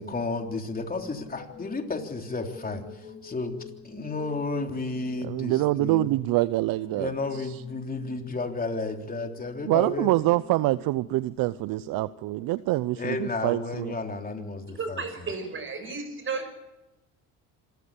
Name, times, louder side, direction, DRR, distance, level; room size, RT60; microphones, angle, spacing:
voice 1, 0.0-3.6 3.8-6.1 6.9-10.1 13.0-15.0, left 3 dB, 20° left, 4 dB, 3.4 m, -32 dB
sound 1, 0.8-12.8, left 4 dB, 60° left, 5.4 m, -48 dB
voice 2, 5.2-7.5 9.7-13.9, right 17 dB, 60° right, 17 dB, 0.7 m, -25 dB
voice 3, 14.7-16.5, right 4 dB, 30° right, 9 dB, 5.9 m, -33 dB
26.5 x 14.0 x 8.5 m, 0.99 s
supercardioid pair, 85°, 38 cm